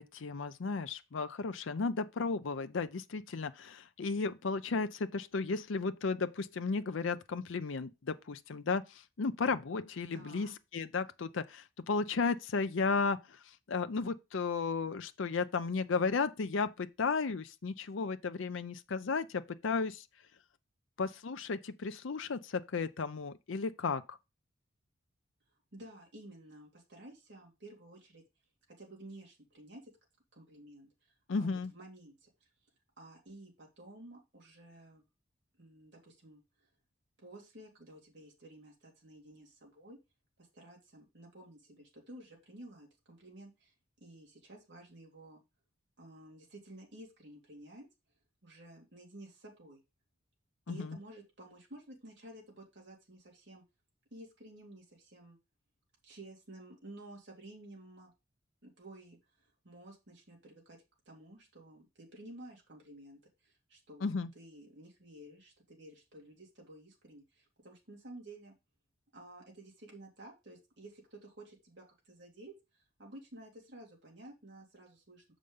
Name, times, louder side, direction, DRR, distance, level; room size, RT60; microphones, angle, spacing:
voice 1, 0.0-13.4 13.7-20.0 21.0-24.2 31.3-31.7 50.7-51.0 64.0-64.3, left 4 dB, 70° left, 0.5 m, -34 dB
voice 2, 10.1-10.5 25.7-28.2 28.8-29.9 30.3-32.5 33.0-35.0 35.6-36.7 37.2-40.0 40.4-43.7 44.0-45.4 46.0-47.9 48.4-49.8 50.7-53.6 54.1-55.4 56.0-58.1 58.6-60.8 61.1-68.5 69.1-75.2, right 1 dB, 60° right, 2.7 m, -53 dB
6.7 x 5.1 x 5.4 m
head